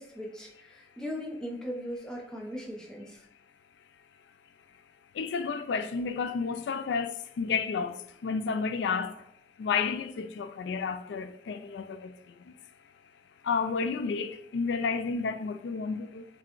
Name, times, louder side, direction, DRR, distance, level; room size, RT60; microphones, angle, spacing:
voice 1, 0.0-3.2, equal, 5° left, 0.7 m, -39 dB
voice 2, 5.1-9.2 9.6-12.1 12.5-12.6 13.4-16.3, left 5 dB, 65° left, 0.3 m, -31 dB
6.0 x 2.2 x 3.0 m
head